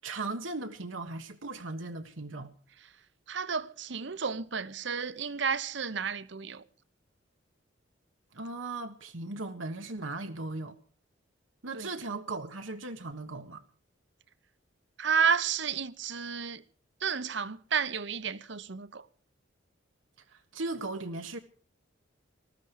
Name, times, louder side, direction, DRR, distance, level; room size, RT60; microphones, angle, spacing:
voice 1, 0.0-2.5 8.3-10.8 11.6-13.6 20.3-21.4, right 2 dB, 85° right, 1.5 m, -37 dB
voice 2, 3.3-6.6 11.7-11.9 15.0-16.6 17.0-19.0, right 6 dB, 65° right, 1.0 m, -31 dB
19.5 x 14.0 x 4.8 m
head